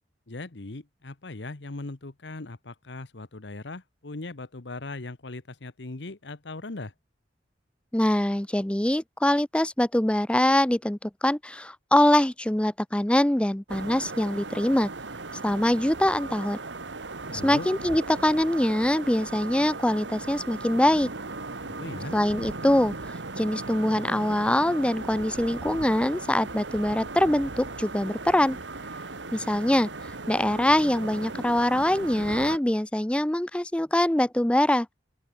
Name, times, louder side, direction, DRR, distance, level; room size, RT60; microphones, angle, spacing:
voice 1, 0.3-6.9 17.3-17.7 21.6-22.1, left 2 dB, 70° left, 1.2 m, -39 dB
voice 2, 7.9-14.9 15.4-16.6 17.4-21.1 22.1-22.9 23.4-28.6 29.3-29.9 30.3-34.9, left 1 dB, 5° left, 0.5 m, -23 dB
sound 1, 13.7-32.6, right 3 dB, 85° right, 2.1 m, -37 dB
open air
head